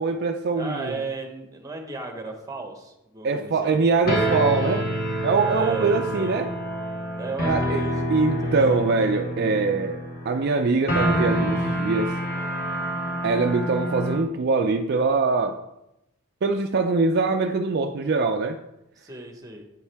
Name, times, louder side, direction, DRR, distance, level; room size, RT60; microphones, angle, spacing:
voice 1, 0.0-0.9 3.2-4.9 5.2-6.5 7.5-7.8 8.1-12.2 13.2-15.6 16.4-18.6, right 4 dB, 50° right, 5 dB, 0.4 m, -23 dB
voice 2, 0.5-3.8 5.5-6.4 7.1-7.9 8.2-8.9 18.9-19.6, right 3 dB, 15° right, 3 dB, 1.2 m, -35 dB
sound 1, 4.0-14.2, equal, 45° left, 1.3 m, -27 dB
8.9 x 7.2 x 3.4 m, 0.88 s
head